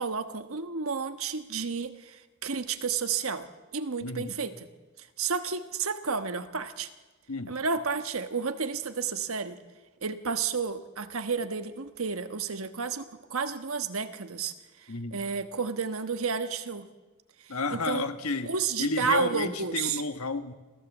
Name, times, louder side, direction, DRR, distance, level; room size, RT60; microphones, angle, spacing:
voice 1, 0.0-4.7 5.0-6.9 7.5-9.6 10.0-16.9 17.4-18.0 18.4-20.0, right 5 dB, 75° right, 9 dB, 1.3 m, -31 dB
voice 2, 4.0-4.4 7.3-7.6 14.9-15.2 17.5-18.5 18.8-20.5, left 3 dB, 85° left, 9 dB, 1.5 m, -31 dB
26.5 x 16.0 x 7.3 m, 1.3 s
head